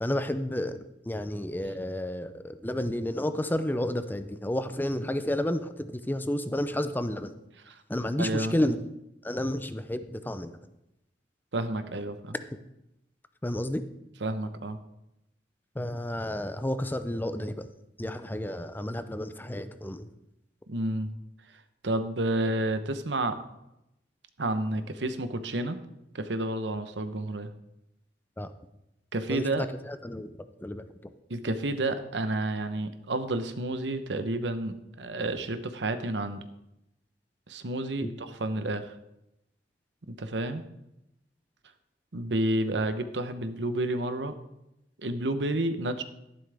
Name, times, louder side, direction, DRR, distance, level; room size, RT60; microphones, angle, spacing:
voice 1, 0.0-0.8 1.1-7.3 7.9-8.8 9.2-10.6 13.4-13.8 15.8-17.7 18.0-20.1 28.4-28.5 29.3-30.3 30.6-31.1 38.0-38.1, left 1 dB, 10° left, 10 dB, 0.5 m, -31 dB
voice 2, 8.2-8.6 11.5-12.4 14.2-14.8 20.7-21.1 21.8-23.4 24.4-25.8 26.1-27.5 29.1-29.6 31.3-36.4 37.5-38.9 40.2-40.6 42.1-44.3 45.0-46.0, right 1 dB, 85° right, 10 dB, 1.0 m, -30 dB
12.5 x 11.0 x 3.5 m, 0.87 s
head